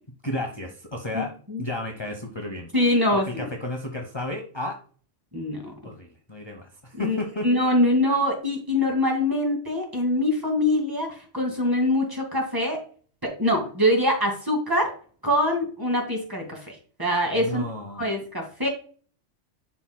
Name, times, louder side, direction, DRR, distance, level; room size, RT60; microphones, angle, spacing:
voice 1, 0.2-2.7 3.1-4.8 5.8-7.5 17.3-18.0, left 1 dB, 25° left, 3 dB, 0.8 m, -33 dB
voice 2, 2.7-3.5 5.3-5.7 7.0-7.2 7.4-12.8 13.2-15.0 15.2-17.6 18.0-18.7, left 1 dB, 15° right, 1 dB, 2.0 m, -24 dB
11.5 x 4.4 x 2.2 m, 0.42 s
omnidirectional pair, 1.2 m